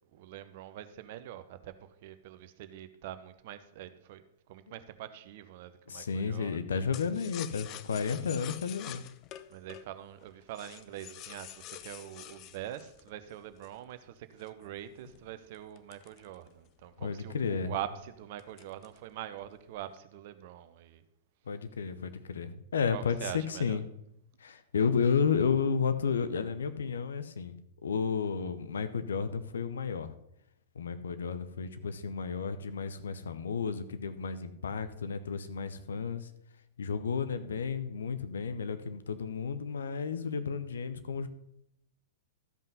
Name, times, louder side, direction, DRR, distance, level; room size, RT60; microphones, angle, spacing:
voice 1, 0.1-4.2 4.5-6.6 9.5-21.0 22.9-23.8, right 12 dB, 50° right, 0.7 m, -44 dB
voice 2, 5.9-9.0 17.0-17.7 21.5-23.9 24.4-27.5 27.8-30.1 30.8-36.3 36.8-41.3, left 6 dB, 65° left, 0.7 m, -32 dB
sound 1, 6.9-13.8 14.4-16.8 17.2-17.3 17.6-17.9 18.4-19.1 19.4-20.0, left 12 dB, 35° left, 0.5 m, -47 dB
13.0 x 5.5 x 5.4 m
figure-of-eight pair, 100°, 0 cm